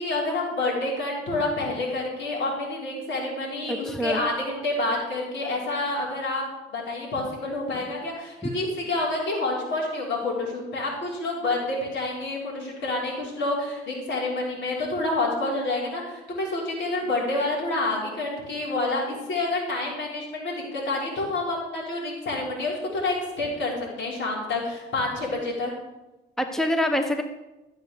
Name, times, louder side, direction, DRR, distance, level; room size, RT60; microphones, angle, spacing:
voice 1, 0.0-6.4 6.7-25.7, left 2 dB, 70° left, -3 dB, 5.5 m, -28 dB
voice 2, 3.7-4.2 26.4-27.2, equal, ahead, 6 dB, 1.1 m, -25 dB
14.0 x 7.9 x 6.8 m, 1.0 s
cardioid pair, 90°, 20 cm